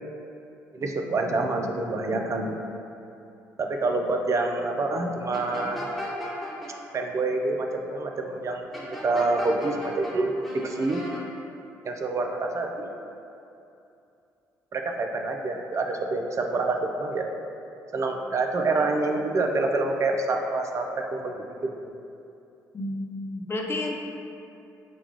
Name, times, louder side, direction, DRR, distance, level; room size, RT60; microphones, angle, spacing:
voice 1, 0.7-2.6 3.6-5.9 6.9-11.0 11.8-12.9 14.7-17.3 17.9-21.9, right 3 dB, 35° right, 3 dB, 0.4 m, -27 dB
sound 1, 5.3-6.7 8.7-10.1 10.4-11.2, equal, ahead, 1.1 m, -36 dB
voice 2, 22.7-23.9, left 2 dB, 30° left, 0 dB, 0.5 m, -31 dB
6.0 x 2.3 x 3.0 m, 2.7 s
figure-of-eight pair, 45°, 8 cm